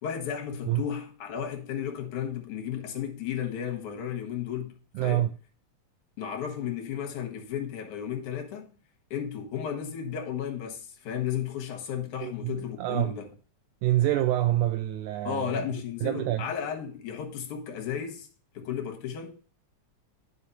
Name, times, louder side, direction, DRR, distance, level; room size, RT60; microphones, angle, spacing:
voice 1, 0.0-5.3 6.2-8.7 9.1-13.3 15.2-18.3 18.5-19.4, left 8 dB, 75° left, 2.8 m, -34 dB
voice 2, 5.0-5.3 12.2-13.1 13.8-15.7 16.0-16.5, right 14 dB, 80° right, 1.9 m, -27 dB
10.5 x 5.3 x 2.8 m
omnidirectional pair, 3.5 m